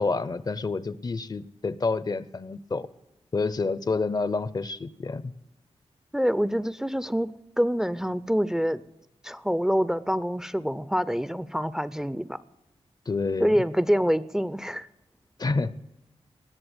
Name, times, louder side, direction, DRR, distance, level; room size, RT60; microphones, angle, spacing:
voice 1, 0.0-2.9 3.3-5.3 13.1-13.6 15.4-15.7, left 3 dB, 35° left, 18 dB, 0.6 m, -28 dB
voice 2, 6.1-7.3 7.6-8.8 9.2-12.4 13.4-14.9, equal, 5° right, 16 dB, 0.5 m, -26 dB
19.5 x 7.6 x 8.0 m, 0.92 s
wide cardioid pair, 120°, 11 cm